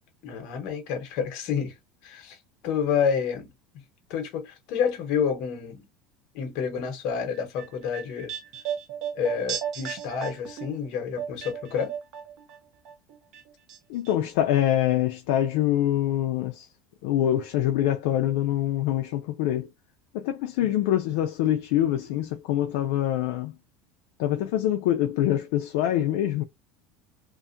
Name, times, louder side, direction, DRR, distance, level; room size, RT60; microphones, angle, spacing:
voice 1, 0.2-1.7 2.0-2.4 2.6-3.5 4.1-5.8 6.3-8.3 9.1-12.0, left 7 dB, 45° left, 0.9 m, -29 dB
sound 1, 7.3-12.6 12.8-13.8 14.0-14.1, right 9 dB, 40° right, 0.5 m, -35 dB
voice 2, 13.9-16.7 17.0-19.7 20.1-23.5 24.2-26.4, left 12 dB, 65° left, 0.3 m, -25 dB
2.5 x 2.3 x 2.5 m
cardioid pair, 175°, 0 cm